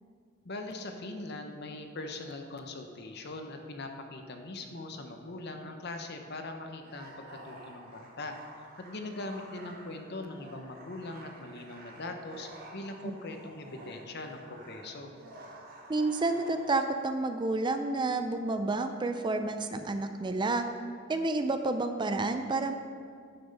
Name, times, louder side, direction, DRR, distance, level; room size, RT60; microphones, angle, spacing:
voice 1, 0.4-8.4 8.8-15.1, left 2 dB, 55° left, 5 dB, 0.9 m, -41 dB
sound 1, 6.8-17.0, right 1 dB, 50° right, 1.5 m, -50 dB
voice 2, 15.9-20.7 21.1-22.7, right 2 dB, 20° right, 8 dB, 0.4 m, -30 dB
10.0 x 6.1 x 5.3 m, 2.1 s
head